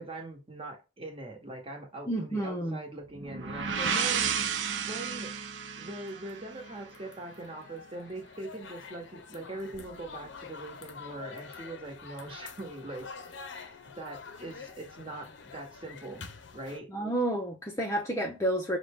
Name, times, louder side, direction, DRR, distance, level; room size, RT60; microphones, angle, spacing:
voice 1, 0.0-4.6 4.9-5.3 5.8-13.1 13.3-13.5 14.0-16.3 16.5-16.9, right 2 dB, 30° right, 1.1 m, -42 dB
voice 2, 2.1-2.8 16.9-18.8, right 1 dB, 15° left, 0.5 m, -30 dB
sound 1, 3.2-7.0, right 6 dB, 70° right, 0.5 m, -32 dB
sound 2, 6.0-16.8, left 5 dB, 65° left, 0.6 m, -47 dB
5.5 x 2.1 x 3.5 m
head